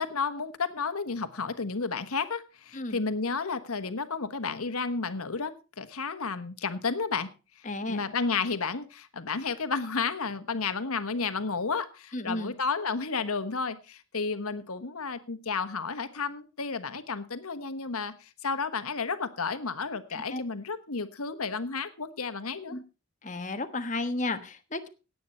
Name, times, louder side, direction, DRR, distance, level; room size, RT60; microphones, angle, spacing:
voice 1, 0.0-7.3 7.9-22.8, left 4 dB, 80° left, 11 dB, 1.3 m, -32 dB
voice 2, 7.6-8.1 12.1-12.5 20.1-20.4 22.7-22.8 23.2-24.9, left 2 dB, 35° left, 7 dB, 1.3 m, -33 dB
17.5 x 8.6 x 4.3 m, 0.32 s
head